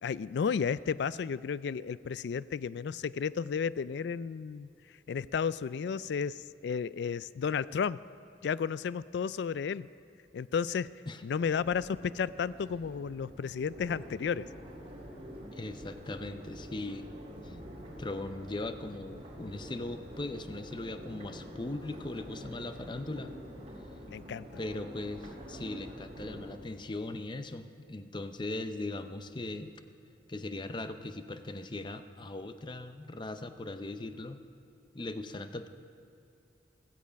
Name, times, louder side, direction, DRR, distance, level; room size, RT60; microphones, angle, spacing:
voice 1, 0.0-4.7 5.1-8.0 8.4-9.9 10.3-10.9 11.2-14.5 24.1-24.5, left 6 dB, 70° left, 18 dB, 0.3 m, -33 dB
Crowd, 11.4-26.6, equal, 35° right, 2.2 m, -47 dB
voice 2, 15.5-17.6 17.8-23.3 24.6-29.7 30.3-34.4 34.9-35.7, left 2 dB, 25° left, 9 dB, 0.6 m, -39 dB
15.5 x 15.0 x 5.2 m, 2.6 s
head